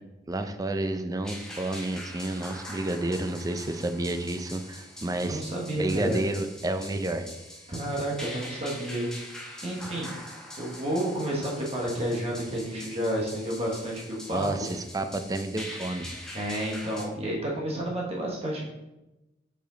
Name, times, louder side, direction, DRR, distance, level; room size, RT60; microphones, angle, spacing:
voice 1, 0.3-5.4 5.7-7.3 14.3-16.2, right 2 dB, 20° right, 8 dB, 0.4 m, -30 dB
sound 1, 1.2-17.0, left 1 dB, 5° left, 1.1 m, -43 dB
voice 2, 5.1-6.2 7.7-9.1 9.6-10.1 10.6-14.7 16.3-18.7, right 1 dB, 35° right, -3 dB, 1.2 m, -30 dB
5.0 x 4.9 x 3.8 m, 0.98 s
head